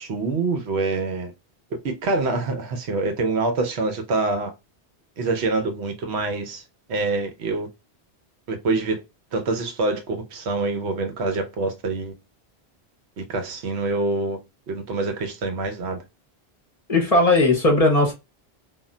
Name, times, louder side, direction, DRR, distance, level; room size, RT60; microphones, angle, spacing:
voice 1, 0.0-1.3 1.8-4.5 5.2-6.6 6.9-7.7 8.5-9.0 9.3-12.1 13.2-14.4 14.7-16.0, right 3 dB, 85° right, 1.0 m, -25 dB
voice 2, 16.9-18.1, left 2 dB, 40° left, 0.7 m, -17 dB
2.3 x 2.1 x 3.7 m
omnidirectional pair, 1.1 m